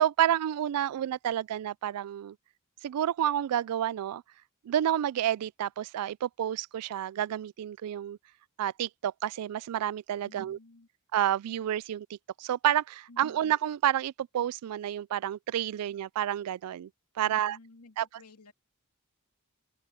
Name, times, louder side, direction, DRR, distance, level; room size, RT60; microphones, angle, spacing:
voice 1, 0.0-2.4 2.8-4.2 4.6-8.2 8.6-10.6 11.1-16.9 17.2-17.6 18.0-18.1, right 11 dB, 85° right, 0.3 m, -29 dB
voice 2, 10.2-10.9 13.1-13.4 17.2-18.5, left 3 dB, 80° left, 2.6 m, -54 dB
open air
head